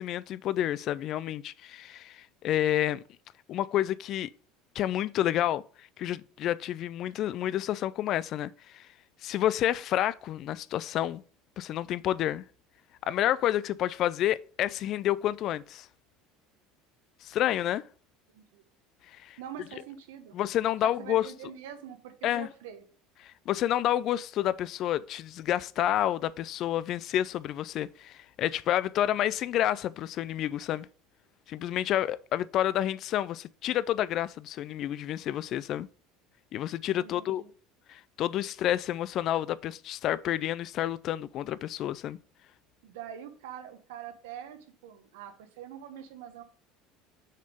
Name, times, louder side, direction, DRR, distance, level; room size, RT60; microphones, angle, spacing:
voice 1, 0.0-3.0 3.5-4.3 4.8-8.9 9.2-11.2 11.6-12.4 13.1-15.9 17.2-17.8 19.1-19.4 20.3-21.3 22.2-22.5 23.2-30.9 31.5-35.9 36.5-37.4 37.9-42.2, left 12 dB, 50° left, 0.3 m, -29 dB
voice 2, 19.4-20.4 20.8-22.8 37.0-37.5 42.8-46.4, right 9 dB, 85° right, 1.1 m, -44 dB
6.4 x 3.5 x 5.3 m
supercardioid pair, 110°, 0 cm